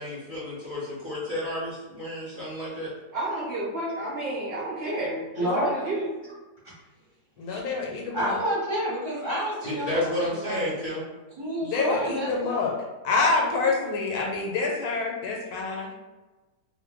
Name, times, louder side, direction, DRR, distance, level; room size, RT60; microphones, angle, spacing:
voice 1, 0.0-2.9 9.6-11.0, left 1 dB, 45° left, -7 dB, 0.7 m, -31 dB
voice 2, 3.1-6.3, right 1 dB, 75° right, -5 dB, 0.5 m, -31 dB
voice 3, 5.4-5.7 8.1-10.6 11.4-12.6, equal, 35° right, -8 dB, 0.9 m, -29 dB
voice 4, 7.4-8.4 11.7-12.7 13.0-15.9, left 3 dB, 80° left, -1 dB, 1.2 m, -26 dB
2.6 x 2.2 x 3.4 m, 1.2 s
omnidirectional pair, 1.7 m